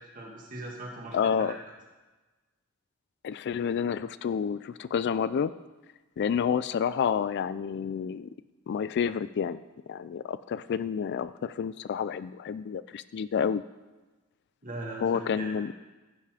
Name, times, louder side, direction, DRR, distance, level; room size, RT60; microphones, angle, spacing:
voice 1, 0.0-1.6 14.6-15.6, right 2 dB, 40° right, -1 dB, 2.1 m, -40 dB
voice 2, 1.1-1.6 3.2-5.5 6.2-8.3 8.7-9.6 9.9-13.6 15.0-15.7, left 7 dB, 50° left, 15 dB, 0.3 m, -29 dB
15.0 x 5.7 x 4.9 m, 1.2 s
head